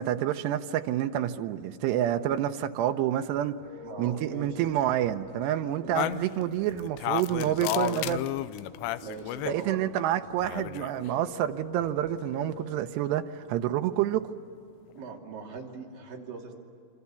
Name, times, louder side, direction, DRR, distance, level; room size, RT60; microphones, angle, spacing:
voice 1, 0.0-3.6 4.0-8.2 9.5-14.3, right 12 dB, 90° right, 7 dB, 2.9 m, -28 dB
sound 1, 3.6-12.6, left 6 dB, 55° left, 7.1 m, -48 dB
voice 2, 3.8-4.6 5.8-6.0 9.0-9.8 14.9-16.6, right 5 dB, 55° right, 0 dB, 4.2 m, -41 dB
sound 2, 6.0-9.6 10.4-11.1, left 14 dB, 90° left, 2.9 m, -32 dB
26.5 x 26.5 x 7.0 m, 2.6 s
omnidirectional pair, 4.8 m